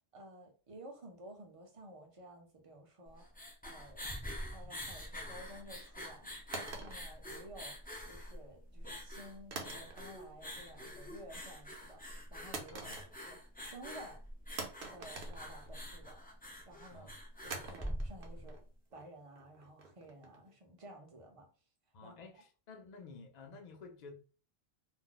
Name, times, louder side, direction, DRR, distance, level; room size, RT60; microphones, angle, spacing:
voice 1, 0.1-3.3 3.6-4.0 4.5-6.4 6.6-7.8 8.1-12.9 13.3-14.2 14.9-16.2 16.7-17.1 17.4-18.6 18.9-21.5 22.0-22.1, right 1 dB, 40° right, 0.6 m, -53 dB
sound 1, 3.1-18.5, equal, 15° left, 0.4 m, -46 dB
sound 2, 6.5-7.9 9.5-10.3 10.7-11.1 12.5-13.5 13.8-13.9 14.6-16.1 17.5-20.5, right 4 dB, 65° right, 0.9 m, -47 dB
voice 2, 12.7-13.1 16.9-17.2 21.9-24.1, left 4 dB, 50° left, 0.6 m, -52 dB
2.4 x 2.1 x 3.8 m
omnidirectional pair, 1.1 m